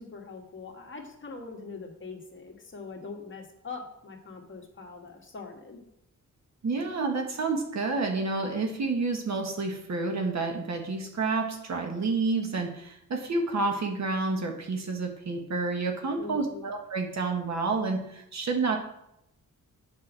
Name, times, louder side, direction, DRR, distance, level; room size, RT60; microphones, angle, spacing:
voice 1, 0.0-5.8 16.1-16.7, left 4 dB, 35° left, 1 dB, 1.6 m, -42 dB
voice 2, 6.6-18.8, right 3 dB, 55° right, 3 dB, 1.5 m, -29 dB
8.0 x 5.3 x 6.2 m, 0.80 s
wide cardioid pair, 110°, 32 cm